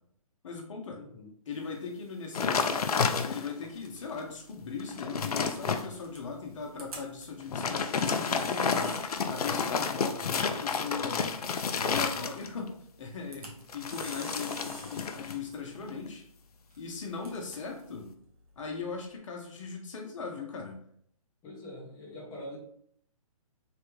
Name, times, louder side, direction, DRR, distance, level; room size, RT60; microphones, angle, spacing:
voice 1, 0.4-1.0 1.5-2.8 3.3-9.0 9.3-11.3 11.8-12.7 13.0-16.2 16.8-18.1 18.6-20.8, left 5 dB, 55° left, 2 dB, 0.7 m, -39 dB
voice 2, 1.0-1.3 21.4-22.6, left 1 dB, 15° left, -4 dB, 0.7 m, -44 dB
sound 1, 2.3-3.7 4.2-4.3 4.7-5.9 7.4-12.7 13.7-15.4 15.7-16.1, left 5 dB, 85° left, 0.4 m, -30 dB
Camera, 3.7-19.2, right 2 dB, 75° right, 1.1 m, -52 dB
3.3 x 2.2 x 3.0 m, 0.66 s
hypercardioid pair, 150°, 19 cm